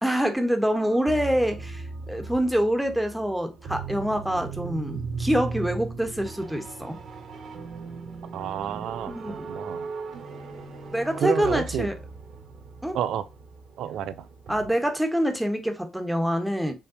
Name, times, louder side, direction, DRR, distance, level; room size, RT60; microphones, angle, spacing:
voice 1, 0.0-7.0 9.1-9.5 10.9-11.9 12.8-13.0 14.5-16.7, equal, 5° right, 1.2 m, -26 dB
sound 1, 0.7-14.7, right 4 dB, 60° right, 1.5 m, -38 dB
voice 2, 8.3-9.9 11.2-11.9 12.9-13.3 13.8-14.3, right 10 dB, 80° right, 0.5 m, -30 dB
5.3 x 3.3 x 2.8 m
cardioid pair, 90°, 0 cm